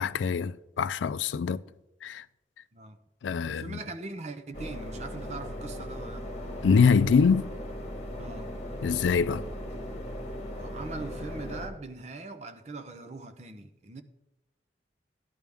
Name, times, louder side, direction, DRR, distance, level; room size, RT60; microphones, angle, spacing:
voice 1, 0.0-1.6 2.0-2.2 3.2-3.8 6.6-7.5 8.8-9.5, left 5 dB, 90° left, 0.4 m, -24 dB
voice 2, 3.4-6.3 8.2-8.6 10.6-14.0, right 3 dB, 35° right, 0.8 m, -41 dB
sound 1, 4.5-11.7, equal, 40° left, 1.8 m, -38 dB
14.5 x 11.0 x 3.5 m
head